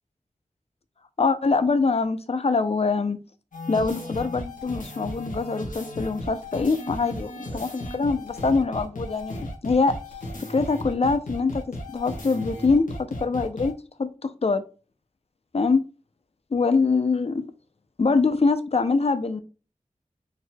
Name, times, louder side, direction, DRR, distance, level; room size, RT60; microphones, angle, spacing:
voice 1, 1.2-3.2 3.7-10.0 10.4-11.6 11.9-12.9 13.2-13.7 14.0-14.6 15.5-15.8 16.5-17.4 18.0-19.4, left 4 dB, 50° left, 10 dB, 0.6 m, -24 dB
sound 1, 3.5-13.7, left 1 dB, 85° left, 1.4 m, -35 dB
4.3 x 4.0 x 2.3 m, 0.33 s
wide cardioid pair, 65°, 13 cm